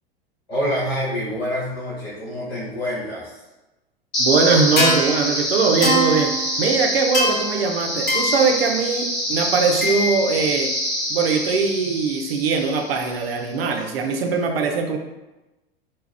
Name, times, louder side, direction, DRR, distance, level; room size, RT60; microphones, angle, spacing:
voice 1, 0.5-3.4, equal, 75° left, -9 dB, 1.1 m, -26 dB
sound 1, 4.1-13.2, equal, 35° left, 1.3 m, -23 dB
voice 2, 4.2-10.7 11.1-15.0, right 4 dB, 70° right, 4 dB, 0.6 m, -21 dB
2.8 x 2.3 x 3.2 m, 1.0 s
figure-of-eight pair, 85°, 31 cm